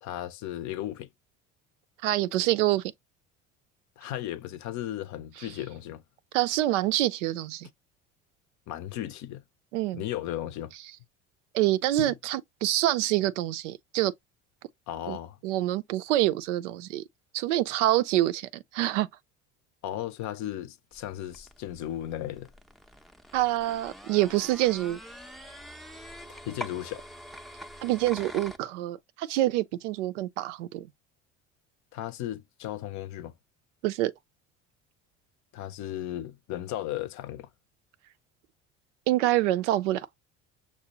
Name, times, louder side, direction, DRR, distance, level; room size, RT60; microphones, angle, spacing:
voice 1, 0.0-1.1 4.0-6.0 8.7-9.4 9.9-10.7 12.0-12.2 14.9-15.4 19.8-22.5 26.3-27.1 31.9-33.3 35.5-37.5, left 12 dB, 50° left, 0.6 m, -35 dB
voice 2, 2.0-2.9 6.3-7.7 9.7-10.0 11.5-14.1 15.1-15.2 15.4-17.0 17.3-19.1 23.3-25.0 27.8-30.9 33.8-34.1 39.1-40.1, right 15 dB, 80° right, 0.5 m, -26 dB
sound 1, 20.9-28.6, left 1 dB, ahead, 0.5 m, -45 dB
6.0 x 2.1 x 2.7 m
hypercardioid pair, 65°, 36 cm